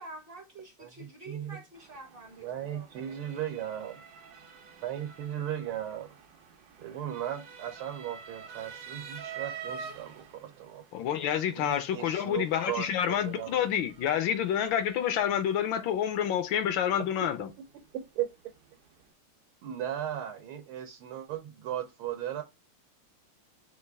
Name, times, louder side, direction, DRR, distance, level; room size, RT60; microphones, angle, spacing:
voice 1, 0.0-3.4, right 2 dB, 45° right, 0.7 m, -48 dB
voice 2, 0.8-1.6 2.4-4.0 4.8-6.1 6.8-11.1 11.5-13.6 17.7-18.3 19.6-22.4, right 11 dB, 85° right, 1.6 m, -37 dB
Motor vehicle (road) / Siren, 1.7-19.1, right 6 dB, 65° right, 1.2 m, -49 dB
voice 3, 10.9-17.5, left 9 dB, 75° left, 1.2 m, -28 dB
5.2 x 2.5 x 3.4 m
omnidirectional pair, 2.3 m